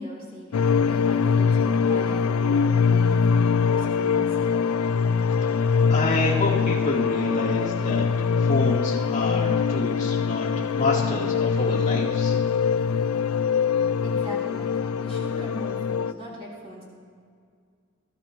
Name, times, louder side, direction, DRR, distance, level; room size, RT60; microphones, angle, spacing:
voice 1, 0.0-4.4 14.0-16.8, left 1 dB, 25° right, -6 dB, 4.2 m, -39 dB
sound 1, 0.5-16.1, left 6 dB, 85° left, 0.3 m, -23 dB
voice 2, 5.4-12.3, left 2 dB, 30° left, -9 dB, 2.7 m, -28 dB
19.5 x 13.0 x 3.1 m, 2.1 s
head